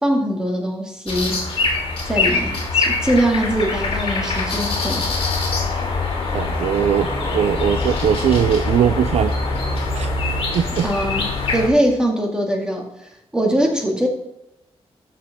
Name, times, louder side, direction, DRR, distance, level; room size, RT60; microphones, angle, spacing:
voice 1, 0.0-1.4 2.1-5.1 10.8-12.9 13.3-14.1, right 1 dB, 5° right, 0 dB, 2.3 m, -21 dB
sound 1, 1.1-11.7, left 3 dB, 60° left, 2.8 m, -23 dB
voice 2, 6.3-9.3 9.9-10.1 10.5-10.9, right 9 dB, 85° right, 11 dB, 0.4 m, -20 dB
14.0 x 6.7 x 3.7 m, 0.87 s
wide cardioid pair, 120°, 11 cm